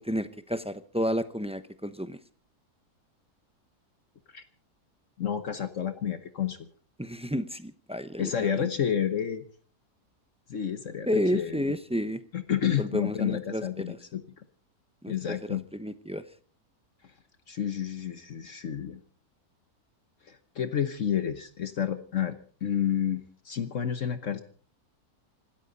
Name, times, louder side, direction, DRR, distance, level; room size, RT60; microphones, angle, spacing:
voice 1, 0.0-2.2 7.0-8.7 11.1-12.2 12.8-14.0 15.0-16.2, equal, 10° right, 11 dB, 0.4 m, -31 dB
voice 2, 5.2-6.6 8.2-9.4 10.5-11.1 11.3-11.6 12.3-14.2 15.1-15.6 17.5-19.0 20.3-22.4 22.6-24.4, left 9 dB, 55° left, 10 dB, 1.3 m, -30 dB
26.0 x 13.5 x 4.1 m, 0.44 s
omnidirectional pair, 1.6 m